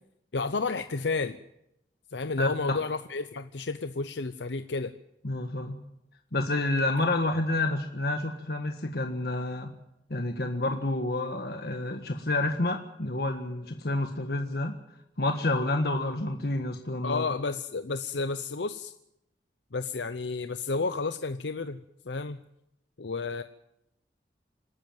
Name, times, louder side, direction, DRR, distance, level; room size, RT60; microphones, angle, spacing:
voice 1, 0.3-1.4 2.1-4.9 17.0-18.9 19.7-21.8 22.0-22.4 23.0-23.4, left 3 dB, 80° left, 10 dB, 0.8 m, -31 dB
voice 2, 2.4-2.8 5.2-5.8 6.3-9.7 10.1-14.7 15.2-17.2, left 2 dB, 60° left, 4 dB, 1.6 m, -29 dB
27.0 x 13.0 x 9.3 m, 0.83 s
head